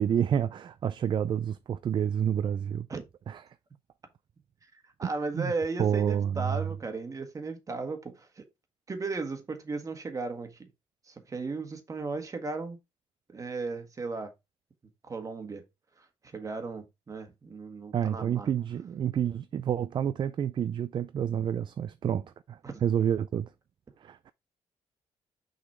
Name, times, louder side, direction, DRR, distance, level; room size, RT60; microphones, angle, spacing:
voice 1, 0.0-2.9 3.3-3.4 5.3-5.5 5.8-6.6 17.9-23.5 24.0-24.3, right 9 dB, 45° right, 0.4 m, -29 dB
voice 2, 4.7-8.4 8.9-10.7 11.0-12.8 13.3-14.3 15.0-15.6 16.0-18.5 19.3-19.4 22.6-22.8, right 3 dB, 30° right, 1.5 m, -36 dB
6.0 x 4.0 x 4.3 m
cardioid pair, 120°, 11 cm